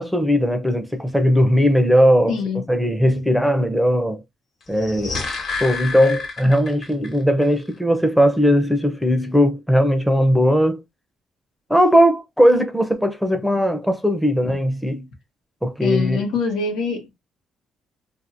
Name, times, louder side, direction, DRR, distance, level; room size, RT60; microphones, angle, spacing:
voice 1, 0.0-2.4 2.7-4.2 4.7-5.2 5.6-10.8 11.7-15.1 15.6-16.2, equal, ahead, 0.6 m, -18 dB
voice 2, 2.3-2.6 6.4-6.5 14.4-14.6 15.8-17.1, left 4 dB, 85° left, 1.1 m, -24 dB
sound 1, 4.7-7.1 7.4-7.5, left 4 dB, 65° left, 1.3 m, -29 dB
2.8 x 2.7 x 2.6 m
cardioid pair, 90°, 0 cm